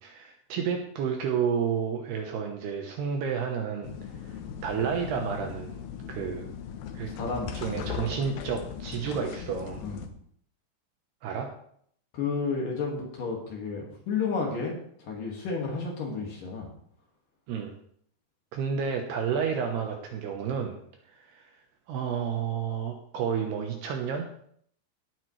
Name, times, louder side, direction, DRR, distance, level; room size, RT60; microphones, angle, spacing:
voice 1, 0.0-3.9 4.6-6.5 6.9-7.1 7.5-9.8 11.2-11.5 17.5-17.7 18.5-20.8 21.2-21.5 21.9-24.3, right 7 dB, 70° right, 3 dB, 2.7 m, -30 dB
sound 1, 3.8-10.1, left 8 dB, 85° left, 2.1 m, -38 dB
voice 2, 7.1-7.8 9.8-10.0 12.1-16.7, left 4 dB, 55° left, -1 dB, 3.1 m, -32 dB
18.5 x 9.1 x 3.2 m, 0.65 s
omnidirectional pair, 5.5 m